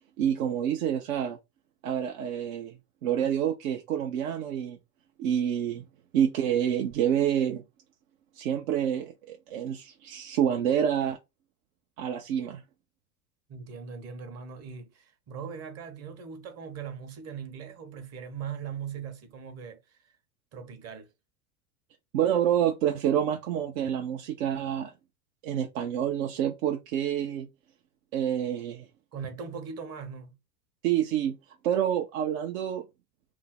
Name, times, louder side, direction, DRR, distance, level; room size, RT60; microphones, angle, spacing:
voice 1, 0.2-1.4 1.8-4.8 5.2-5.9 6.1-7.6 8.3-11.2 12.0-12.6 22.1-24.9 25.4-27.5 28.1-28.9 30.8-31.4 31.6-32.8, right 9 dB, 65° right, 0.7 m, -28 dB
voice 2, 13.5-20.0 20.5-21.1 29.1-30.4, right 6 dB, 35° right, 0.9 m, -40 dB
2.7 x 2.0 x 3.6 m
hypercardioid pair, 90°, 43 cm